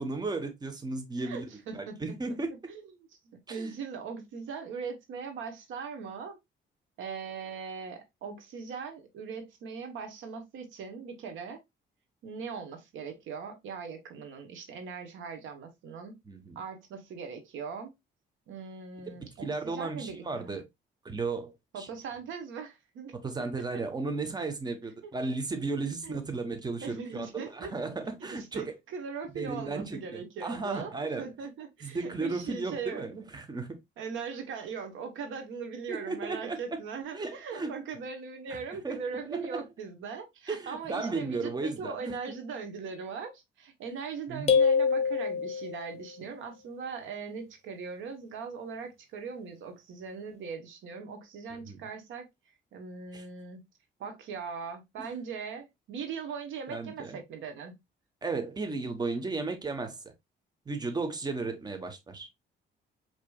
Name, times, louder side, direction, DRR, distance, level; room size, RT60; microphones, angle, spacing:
voice 1, 0.0-1.5 1.7-2.5 3.5-3.7 16.3-16.6 19.1-20.6 21.0-21.9 23.1-28.7 29.3-31.3 31.8-33.8 35.9-36.6 37.1-37.7 38.5-38.6 38.8-39.0 39.3-39.6 40.5-42.3 44.3-44.5 51.7-51.8 53.1-53.2 55.0-55.1 56.7-57.2 58.2-60.0 60.7-62.3, right 3 dB, 20° right, 0.9 m, -35 dB
voice 2, 1.2-2.2 2.7-2.8 3.5-6.4 7.0-11.6 12.2-16.2 16.5-17.9 18.5-20.6 21.7-23.1 25.0-25.1 26.0-26.2 26.8-27.7 28.2-33.3 34.0-52.3 52.7-53.7 54.0-57.7, right 5 dB, 80° right, 1.0 m, -40 dB
sound 1, 44.5-46.0, left 6 dB, 35° left, 0.8 m, -25 dB
4.7 x 2.9 x 2.2 m
cardioid pair, 90°, 20 cm